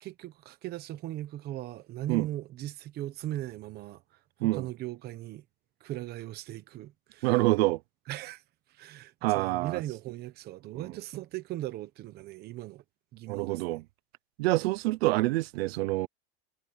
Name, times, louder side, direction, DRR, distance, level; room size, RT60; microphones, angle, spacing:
voice 1, 0.0-4.0 4.4-5.4 5.8-7.4 8.1-8.4 8.7-12.8 13.1-13.8, right 14 dB, 30° right, 1.0 m, -38 dB
voice 2, 7.2-7.8 9.2-9.8 10.7-10.9 13.3-13.8 14.4-16.1, right 20 dB, 60° right, 0.7 m, -26 dB
supercardioid pair, 165°, 35 cm